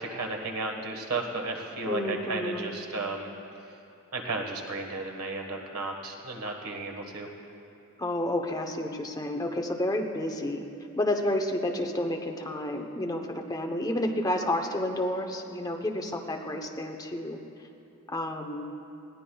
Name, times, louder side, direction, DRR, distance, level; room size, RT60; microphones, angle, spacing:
voice 1, 0.0-3.3 4.1-7.3, right 3 dB, 90° right, 2 dB, 1.5 m, -34 dB
voice 2, 1.9-2.7 8.0-10.7 11.0-17.4 18.1-18.7, left 1 dB, 15° left, 3 dB, 0.9 m, -30 dB
20.5 x 16.5 x 2.3 m, 2.7 s
head